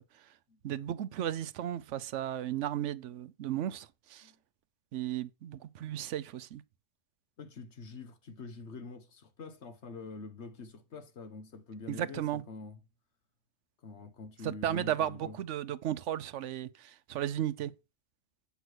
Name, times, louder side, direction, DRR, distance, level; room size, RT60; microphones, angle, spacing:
voice 1, 0.6-4.3 4.9-6.6 11.9-12.4 14.4-17.7, right 11 dB, 85° right, 1.0 m, -35 dB
voice 2, 7.4-12.8 13.8-15.4, left 4 dB, 70° left, 1.4 m, -46 dB
8.2 x 5.7 x 6.2 m
omnidirectional pair, 1.2 m